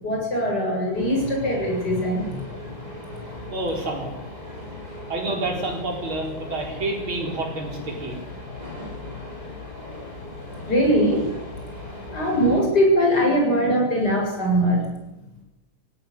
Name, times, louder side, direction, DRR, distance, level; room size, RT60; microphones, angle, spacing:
voice 1, 0.0-2.4 10.7-11.2 12.1-14.8, equal, 50° left, 0 dB, 8.1 m, -21 dB
sound 1, 0.9-12.6, left 2 dB, 20° right, 6.1 m, -37 dB
voice 2, 3.5-4.1 5.1-8.2, right 2 dB, 85° right, 2 dB, 5.2 m, -28 dB
18.5 x 17.0 x 9.9 m, 0.92 s
omnidirectional pair, 2.2 m